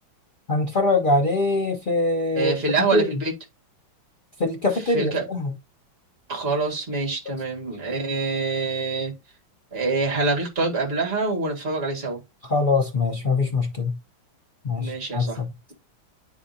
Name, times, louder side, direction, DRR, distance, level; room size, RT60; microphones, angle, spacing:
voice 1, 0.5-2.5 2.9-3.1 4.4-5.5 12.5-13.9 14.6-15.5, left 2 dB, 75° left, 0.4 m, -23 dB
voice 2, 2.3-3.3 4.7-5.2 6.3-9.1 9.7-12.2 14.8-15.4, right 3 dB, 30° right, 1.9 m, -25 dB
9.5 x 4.2 x 2.6 m
omnidirectional pair, 2.1 m